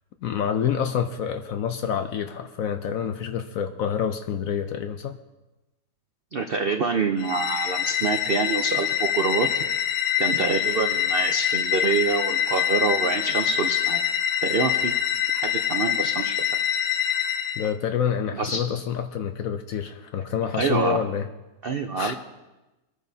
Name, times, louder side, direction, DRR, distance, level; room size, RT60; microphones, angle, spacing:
voice 1, 0.2-5.2 17.6-21.3 21.9-22.1, left 8 dB, 65° left, 8 dB, 0.9 m, -27 dB
voice 2, 6.3-9.8 10.2-14.0 14.4-14.9 15.3-16.4 18.3-18.6 20.6-21.0 21.6-22.1, right 4 dB, 85° right, 5 dB, 0.5 m, -26 dB
sound 1, 7.2-17.7, left 10 dB, 85° left, 1.4 m, -25 dB
22.0 x 9.6 x 2.7 m, 1.1 s
omnidirectional pair, 1.9 m